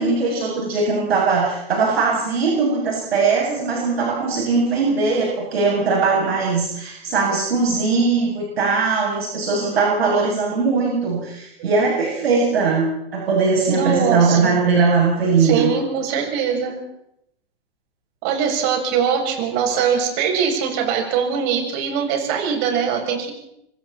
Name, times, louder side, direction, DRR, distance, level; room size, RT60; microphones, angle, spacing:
voice 1, 0.0-15.7, right 4 dB, 75° right, -2 dB, 8.0 m, -20 dB
voice 2, 13.7-14.6 15.4-16.8 18.2-23.3, right 7 dB, 45° right, 2 dB, 7.5 m, -22 dB
26.0 x 25.5 x 4.4 m, 0.76 s
hypercardioid pair, 110°, 31 cm